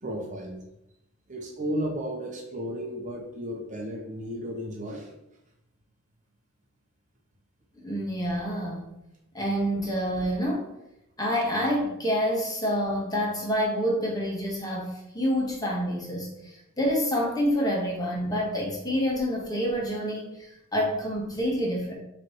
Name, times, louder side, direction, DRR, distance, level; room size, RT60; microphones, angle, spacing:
voice 1, 0.0-0.6 1.3-5.1, equal, 40° right, 0 dB, 1.0 m, -34 dB
voice 2, 7.8-8.9 9.3-10.7 11.2-21.9, equal, 20° left, -3 dB, 1.6 m, -27 dB
7.2 x 3.3 x 4.5 m, 0.87 s
head